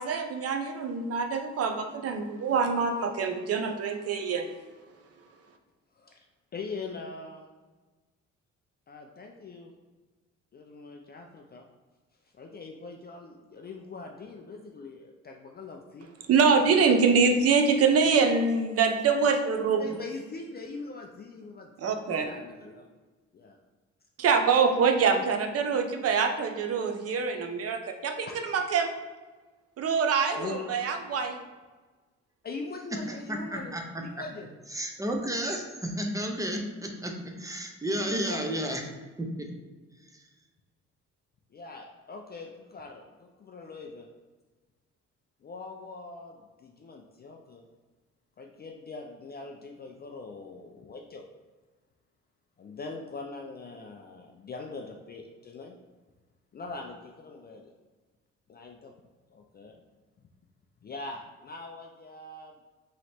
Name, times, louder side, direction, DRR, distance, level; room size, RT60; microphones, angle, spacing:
voice 1, 0.0-4.5 16.3-19.8 21.8-22.3 24.2-28.9 29.8-31.4, right 5 dB, 50° right, 5 dB, 0.6 m, -25 dB
voice 2, 5.9-6.3 6.5-7.5 8.9-9.7 10.5-11.7 12.3-16.1 19.7-22.9 23.3-23.6 28.3-28.6 30.4-30.7 32.4-34.5 37.9-38.8 41.5-44.1 45.4-47.6 48.4-51.2 52.6-55.8 56.5-57.7 58.5-58.9 59.3-59.8 60.8-62.6, left 3 dB, 35° left, 2 dB, 0.4 m, -42 dB
voice 3, 33.1-33.8 34.7-38.8 39.2-39.5, right 1 dB, 10° right, 3 dB, 0.6 m, -32 dB
3.2 x 2.9 x 4.2 m, 1.3 s
cardioid pair, 90°, 30 cm